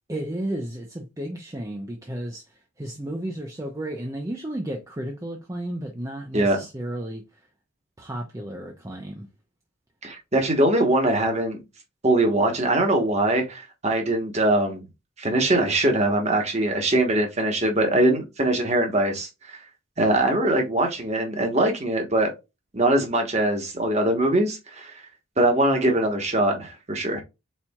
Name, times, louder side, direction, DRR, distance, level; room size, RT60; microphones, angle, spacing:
voice 1, 0.1-7.5 8.0-9.3, right 1 dB, 15° right, 0.6 m, -33 dB
voice 2, 10.0-11.6 12.0-14.9 15.2-19.6 20.0-22.3 22.7-24.9 25.4-27.2, right 1 dB, 30° right, 1.1 m, -22 dB
4.4 x 4.1 x 2.3 m
head